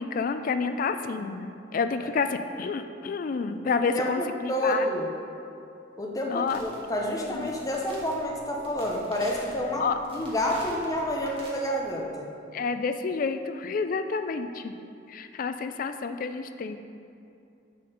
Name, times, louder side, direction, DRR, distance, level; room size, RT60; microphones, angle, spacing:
voice 1, 0.0-4.9 6.3-6.6 7.2-7.5 9.8-10.0 12.5-14.7 15.1-16.8, left 5 dB, 50° left, 9 dB, 0.4 m, -29 dB
voice 2, 3.6-5.1 6.0-9.8 10.1-12.3, equal, 20° left, -2 dB, 0.8 m, -29 dB
sound 1, 6.5-11.5, right 1 dB, 30° right, 1.6 m, -47 dB
7.3 x 4.3 x 6.5 m, 2.6 s
head